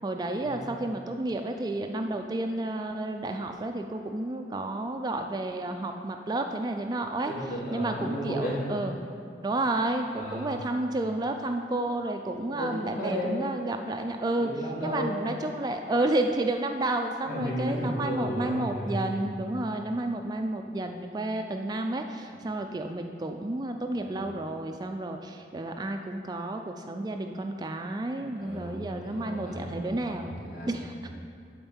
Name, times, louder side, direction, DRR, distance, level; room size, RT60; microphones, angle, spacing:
voice 1, 0.0-7.3 7.7-9.0 9.4-14.5 14.8-30.3 30.7-30.9, right 2 dB, 25° right, 5 dB, 0.3 m, -31 dB
voice 2, 7.3-8.6 10.1-10.6 12.5-13.4 14.3-15.2 17.2-19.1 22.3-22.4 23.9-24.3 28.3-31.1, equal, 50° left, -6 dB, 2.3 m, -34 dB
8.9 x 4.3 x 7.2 m, 2.3 s
head